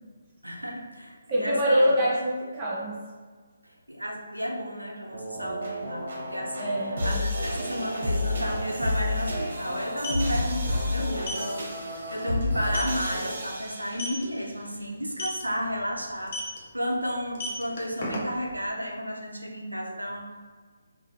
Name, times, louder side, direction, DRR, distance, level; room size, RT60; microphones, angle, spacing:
voice 1, 0.4-1.9 3.6-16.4 16.7-20.4, equal, 90° right, 0 dB, 0.5 m, -33 dB
voice 2, 1.3-3.0 6.6-7.2, equal, 20° right, -7 dB, 0.9 m, -25 dB
sound 1, 5.1-14.4, left 1 dB, 50° right, 1.0 m, -30 dB
sound 2, 8.7-8.8 9.8-10.3 11.2-11.5 11.9-12.1 12.4-12.5 12.7-13.0 13.9-14.2 15.1-15.4 16.3-16.6 17.2-18.5, left 1 dB, 40° left, 0.7 m, -33 dB
3.8 x 2.7 x 2.6 m, 1.5 s
figure-of-eight pair, 145°, 0 cm